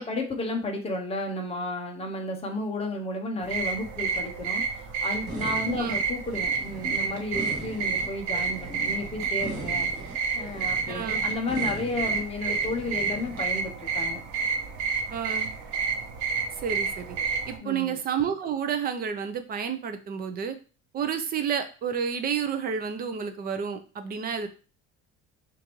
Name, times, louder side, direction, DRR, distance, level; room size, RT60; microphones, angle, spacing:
voice 1, 0.0-14.2 17.6-18.0, left 2 dB, 20° left, 3 dB, 0.7 m, -33 dB
sound 1, 3.4-17.6, right 5 dB, 75° right, 0.9 m, -30 dB
sound 2, 5.3-13.4, right 2 dB, 50° right, 1.4 m, -40 dB
voice 2, 5.6-6.0 10.9-11.3 15.1-15.5 16.6-17.2 17.5-20.6 20.9-24.5, right 7 dB, 30° right, 8 dB, 0.5 m, -30 dB
6.4 x 2.6 x 3.0 m, 0.35 s
cardioid pair, 170°, 30 cm